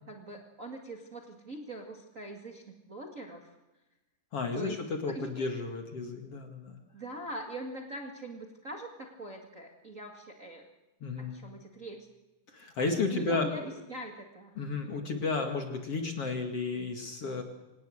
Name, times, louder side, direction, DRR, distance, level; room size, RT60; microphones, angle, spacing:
voice 1, 0.1-3.6 4.5-4.8 5.1-5.5 6.9-10.6 11.2-12.1 13.1-13.6 13.9-14.5, right 1 dB, 65° right, 1 dB, 0.7 m, -43 dB
voice 2, 4.3-6.8 11.0-11.4 12.5-13.7 14.6-17.4, left 3 dB, 45° left, 4 dB, 2.2 m, -33 dB
26.0 x 19.0 x 6.6 m, 1.0 s
omnidirectional pair, 5.2 m